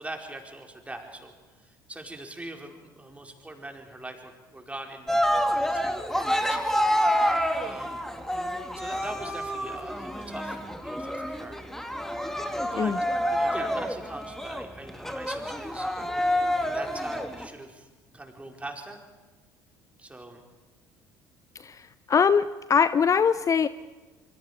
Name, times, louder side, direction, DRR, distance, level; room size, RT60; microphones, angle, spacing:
voice 1, 0.0-6.6 7.6-8.1 8.7-11.6 12.3-12.9 13.3-15.9 16.6-17.9 18.1-19.0 20.0-20.4, right 2 dB, 10° right, 3 dB, 4.8 m, -42 dB
Cheering, 5.1-17.5, equal, 5° left, 2.4 m, -28 dB
voice 2, 21.5-23.7, left 6 dB, 30° left, 15 dB, 0.7 m, -22 dB
27.0 x 24.5 x 5.1 m, 1.3 s
figure-of-eight pair, 60°, 10 cm